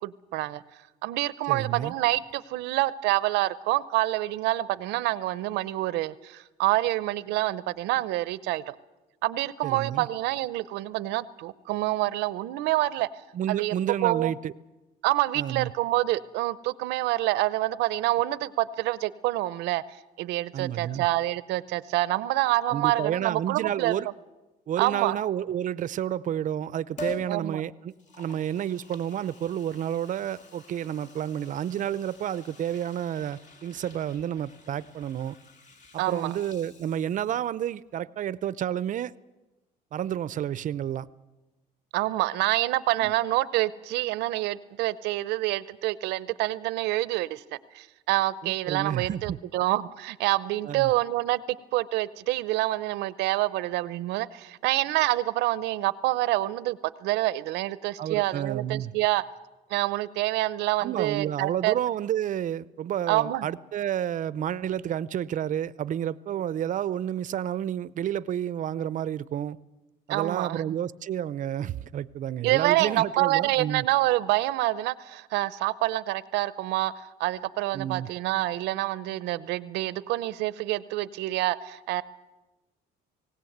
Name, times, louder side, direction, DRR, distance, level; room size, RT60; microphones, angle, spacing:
voice 1, 0.0-0.6 1.0-8.7 9.2-13.1 13.5-13.7 14.0-14.3 15.0-19.8 20.2-23.9 24.8-25.2 27.3-27.6 36.0-36.4 41.9-51.4 51.7-59.2 59.7-61.8 63.1-63.5 70.1-70.6 72.4-82.0, right 17 dB, 90° right, 0.7 m, -27 dB
voice 2, 1.5-1.9 9.6-10.1 13.3-14.5 15.3-15.7 20.5-21.1 22.7-24.1 24.7-35.4 35.9-39.1 39.9-41.1 43.0-43.1 48.4-49.4 50.6-50.9 58.0-58.9 60.8-69.6 70.1-73.8 77.7-78.1, right 10 dB, 50° right, 0.6 m, -30 dB
Liquid, 27.0-27.3 27.9-37.5 37.9-38.0, left 2 dB, 45° left, 2.4 m, -46 dB
19.0 x 18.0 x 8.0 m
cardioid pair, 110°, 17 cm